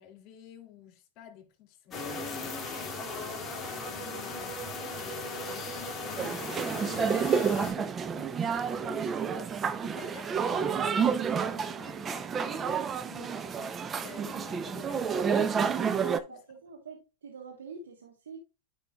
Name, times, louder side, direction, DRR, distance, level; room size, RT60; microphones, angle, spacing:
voice 1, 0.0-3.0 3.9-9.5 9.8-16.4, left 9 dB, 50° left, 2.8 m, -50 dB
sound 1, 1.9-7.7, left 2 dB, 20° left, 2.5 m, -37 dB
sound 2, 6.2-16.2, right 6 dB, 25° right, 0.6 m, -30 dB
voice 2, 16.3-18.4, right 5 dB, 85° right, 1.3 m, -46 dB
10.5 x 5.4 x 2.3 m
hypercardioid pair, 110°, 0 cm